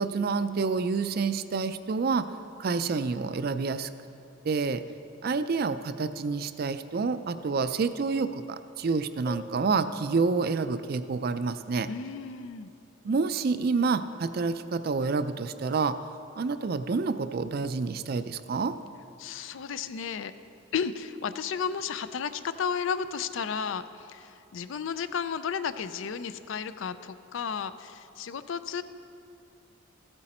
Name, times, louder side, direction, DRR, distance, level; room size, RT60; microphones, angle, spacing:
voice 1, 0.0-2.3 2.6-3.9 4.4-4.8 5.2-11.9 13.0-16.0 16.4-18.8, right 4 dB, 50° right, 11 dB, 0.4 m, -28 dB
sound 1, 9.3-10.7, left 2 dB, 15° left, 0.6 m, -45 dB
voice 2, 11.9-12.7 19.2-20.3 20.7-28.8, left 6 dB, 70° left, 13 dB, 0.4 m, -33 dB
14.5 x 8.9 x 4.3 m, 2.7 s
head